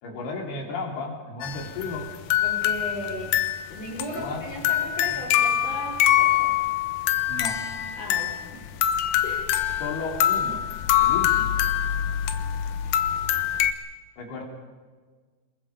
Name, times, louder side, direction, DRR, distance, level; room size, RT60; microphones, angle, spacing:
voice 1, 0.0-2.1 4.1-4.5 5.1-5.2 7.3-7.6 9.8-10.6 11.0-11.6 14.2-14.4, left 3 dB, 90° left, 1 dB, 5.6 m, -34 dB
sound 1, 1.4-13.7, left 11 dB, 70° left, 2.3 m, -24 dB
voice 2, 2.4-6.6 7.9-8.7 9.2-9.7, left 1 dB, 40° left, -2 dB, 4.9 m, -36 dB
27.5 x 22.0 x 5.2 m, 1.5 s
omnidirectional pair, 4.5 m